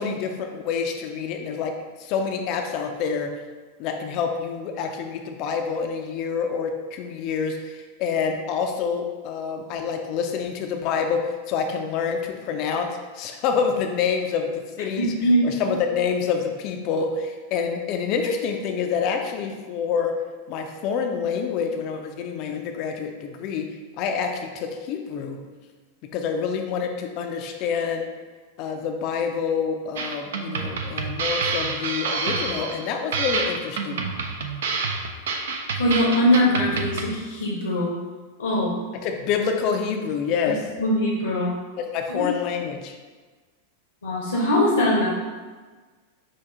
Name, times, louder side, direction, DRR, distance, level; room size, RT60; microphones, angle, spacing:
voice 1, 0.0-1.7 2.0-3.3 3.8-12.9 13.1-15.1 15.4-20.1 20.5-23.7 24.0-25.4 26.1-28.1 28.6-34.0 39.0-40.6 41.8-43.0, left 6 dB, 40° left, 4 dB, 0.4 m, -27 dB
voice 2, 15.0-15.4 35.8-37.9 38.4-38.7 40.8-41.5 42.2-42.3 44.0-45.1, equal, 75° left, -3 dB, 0.8 m, -21 dB
sound 1, 30.0-37.1, right 4 dB, 60° right, 0.4 m, -28 dB
5.6 x 2.4 x 3.5 m, 1.4 s
figure-of-eight pair, 90°, 0 cm